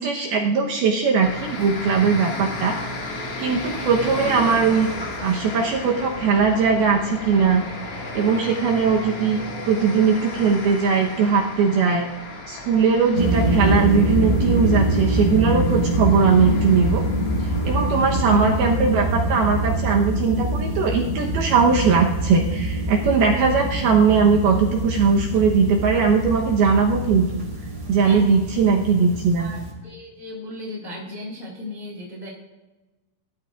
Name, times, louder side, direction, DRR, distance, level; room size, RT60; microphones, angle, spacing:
voice 1, 0.0-2.7 3.4-4.9 5.2-7.6 8.2-12.1 12.5-17.0 17.6-27.4 27.9-29.5, right 5 dB, 75° right, 0 dB, 2.4 m, -19 dB
sound 1, 1.2-18.8, left 2 dB, 50° left, 1.9 m, -34 dB
sound 2, 13.1-29.7, right 1 dB, 35° right, 2.2 m, -24 dB
voice 2, 28.0-28.3 29.4-32.3, left 1 dB, 75° left, -4 dB, 0.7 m, -36 dB
21.5 x 12.0 x 2.5 m, 1.1 s
omnidirectional pair, 5.6 m